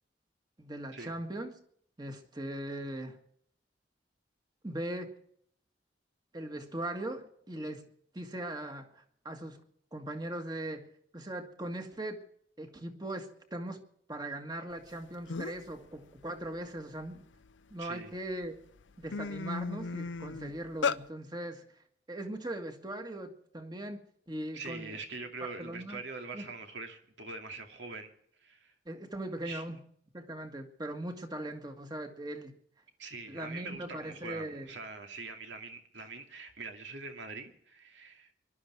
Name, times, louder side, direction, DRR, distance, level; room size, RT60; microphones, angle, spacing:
voice 1, 0.6-1.5 2.0-3.2 4.6-5.2 6.3-7.9 8.1-9.6 9.9-12.2 12.6-13.8 14.1-17.3 17.7-18.6 19.0-21.7 22.1-25.0 25.6-26.0 26.3-26.5 28.9-29.8 30.1-32.6 33.3-34.7, right 1 dB, 20° right, 1.8 m, -40 dB
sound 1, 14.9-15.0 15.3-15.7 16.2-17.7 18.3-18.5 18.8-21.0, left 5 dB, 90° left, 0.6 m, -35 dB
voice 2, 17.8-18.1 24.5-28.1 28.4-28.7 29.4-29.6 33.0-38.3, right 3 dB, 80° right, 2.5 m, -43 dB
24.5 x 12.0 x 4.6 m
head